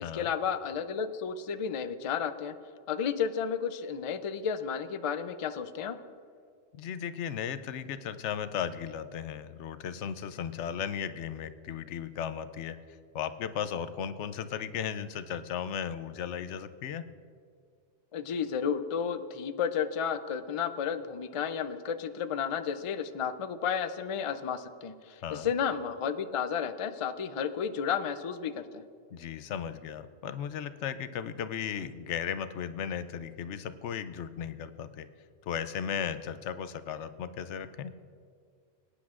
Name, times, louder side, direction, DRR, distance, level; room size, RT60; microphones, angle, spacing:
voice 1, 0.1-2.5 2.9-6.0 18.1-28.8, left 7 dB, 50° left, 10 dB, 0.4 m, -32 dB
voice 2, 6.7-12.8 13.1-17.0 25.2-25.5 29.1-35.1 35.4-37.9, left 8 dB, 85° left, 12 dB, 0.9 m, -36 dB
23.0 x 10.0 x 2.5 m, 2.2 s
omnidirectional pair, 1.2 m